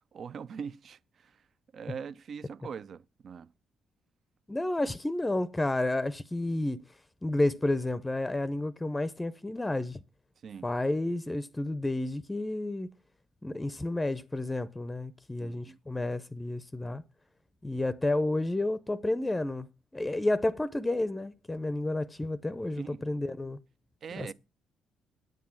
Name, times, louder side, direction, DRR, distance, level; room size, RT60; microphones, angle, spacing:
voice 1, 0.1-1.4 1.7-3.5 10.4-10.7 15.4-15.8 22.8-23.0 24.0-24.3, right 6 dB, 55° right, 0.4 m, -42 dB
voice 2, 4.5-6.8 7.2-10.0 10.6-12.9 13.4-17.0 17.6-19.7 19.9-23.6 24.1-24.3, left 2 dB, 15° left, 0.6 m, -31 dB
9.3 x 7.4 x 5.8 m
cardioid pair, 90°, 0 cm